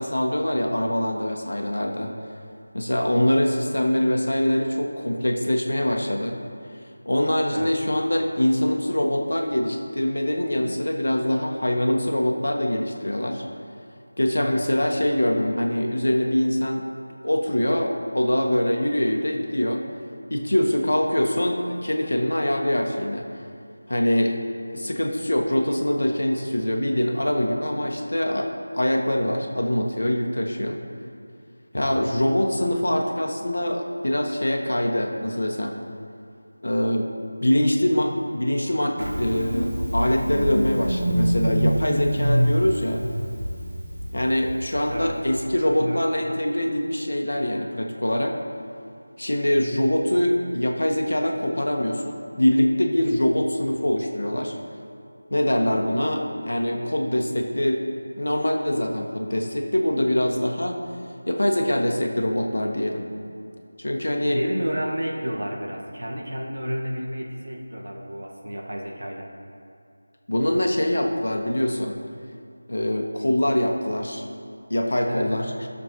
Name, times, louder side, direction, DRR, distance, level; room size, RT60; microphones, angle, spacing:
voice 1, 0.0-2.1 2.7-6.3 7.0-13.4 14.2-16.8 17.2-19.8 20.3-23.2 23.9-24.3 24.7-28.5 28.7-30.8 31.7-35.7 36.6-37.1 37.4-43.0 44.1-48.3 49.2-54.5 55.3-57.8 58.2-60.8 61.3-63.1 63.8-64.4 70.3-72.0 72.7-74.2 74.7-75.4, left 1 dB, 80° left, 2 dB, 1.3 m, -23 dB
Engine starting, 39.0-45.5, equal, 50° right, 1.4 m, -26 dB
voice 2, 44.9-45.2 45.6-46.0 64.3-69.3 75.0-75.4, equal, 80° right, -1 dB, 1.5 m, -31 dB
14.0 x 6.8 x 3.0 m, 2.4 s
figure-of-eight pair, 180°, 0 cm